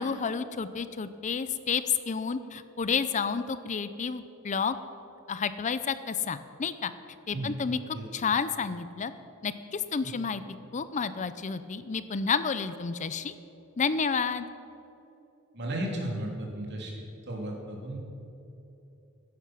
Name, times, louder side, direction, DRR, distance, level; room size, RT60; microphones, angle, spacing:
voice 1, 0.0-4.8 5.3-6.9 7.3-7.8 8.1-9.1 9.4-10.4 10.7-13.3 13.8-14.5, left 6 dB, 35° left, 13 dB, 0.5 m, -30 dB
voice 2, 15.5-18.0, right 1 dB, 55° right, -1 dB, 3.1 m, -34 dB
15.0 x 10.5 x 6.2 m, 2.9 s
head